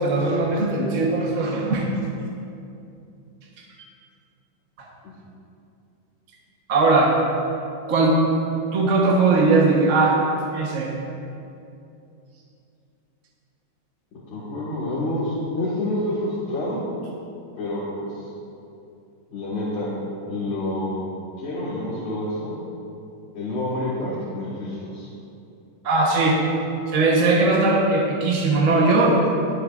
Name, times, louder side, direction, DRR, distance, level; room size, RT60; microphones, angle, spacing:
voice 1, 0.0-1.9 4.8-4.9 6.7-7.2 7.9-8.2 8.7-10.2 10.5-10.9 25.8-26.4 26.9-29.4, right 3 dB, 45° right, -2 dB, 1.4 m, -19 dB
voice 2, 14.3-16.8 17.6-18.1 19.3-19.9 20.2-21.1 21.4-22.6 23.3-25.1, left 1 dB, 90° left, -9 dB, 2.5 m, -28 dB
22.0 x 7.4 x 2.5 m, 2.6 s
omnidirectional pair, 2.0 m